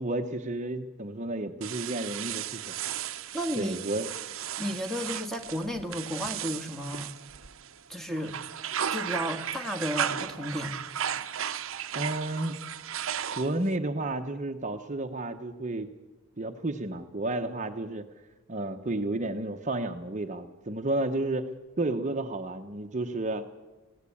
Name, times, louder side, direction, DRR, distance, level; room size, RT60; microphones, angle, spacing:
voice 1, 0.0-2.7 3.6-4.1 11.9-12.6 13.4-15.9 16.4-18.1 18.5-21.5 21.8-23.5, right 2 dB, 35° right, 6 dB, 0.9 m, -31 dB
sound 1, 1.6-7.8 8.2-13.7, right 9 dB, 65° right, 0.8 m, -35 dB
voice 2, 3.3-3.8 4.6-7.1 7.9-8.3 8.9-10.8, equal, ahead, 4 dB, 1.7 m, -33 dB
21.0 x 17.0 x 8.5 m, 1.2 s
head